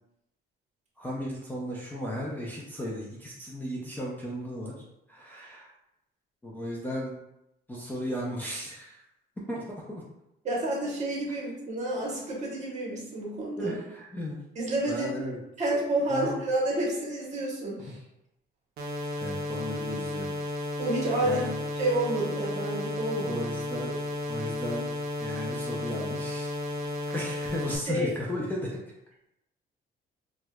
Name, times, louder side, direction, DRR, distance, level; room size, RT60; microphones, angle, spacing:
voice 1, 1.0-5.7 6.4-7.1 7.7-9.0 9.5-10.0 13.6-14.4 14.9-15.4 16.1-16.5 19.2-20.3 21.2-21.5 23.2-23.9 24.3-24.9 25.2-26.6 27.1-28.8, left 1 dB, 10° left, -4 dB, 0.4 m, -35 dB
voice 2, 10.4-13.7 14.6-15.1 15.6-17.9 20.8-21.5 21.7-23.4 27.9-28.1, right 1 dB, 40° right, -3 dB, 1.1 m, -29 dB
sound 1, 18.8-27.8, left 1 dB, 55° right, 0.5 m, -33 dB
4.3 x 2.2 x 2.3 m, 0.85 s
cardioid pair, 135°, 19 cm